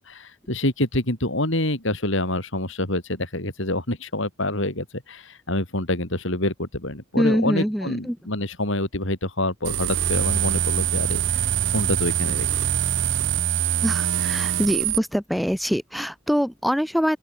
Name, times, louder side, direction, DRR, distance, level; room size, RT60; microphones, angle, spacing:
voice 1, 0.0-11.5 11.7-12.5, left 1 dB, 65° left, 7.2 m, -27 dB
voice 2, 7.2-8.2 13.8-17.2, equal, ahead, 1.3 m, -24 dB
sound 1, 9.6-15.0, right 10 dB, 60° right, 0.7 m, -23 dB
open air
head